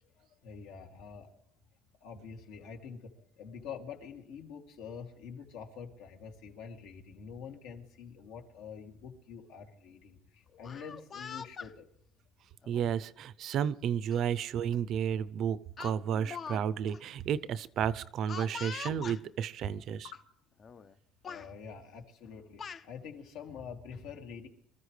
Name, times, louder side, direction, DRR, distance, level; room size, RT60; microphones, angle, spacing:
voice 1, 0.2-1.4 2.0-11.9 19.7-20.2 21.3-24.5, left 6 dB, 80° left, 3 dB, 2.6 m, -46 dB
Speech, 10.5-11.7 12.6-12.9 14.1-14.2 14.6-14.8 15.8-16.6 16.9-17.0 18.3-19.2 20.1-20.2 20.6-20.9 21.2-21.5 22.3-22.8, left 6 dB, 30° left, 0.5 m, -43 dB
voice 2, 12.7-20.1, right 8 dB, 50° right, 19 dB, 0.6 m, -32 dB
25.5 x 14.0 x 3.3 m, 0.70 s
cardioid pair, 150°, 0 cm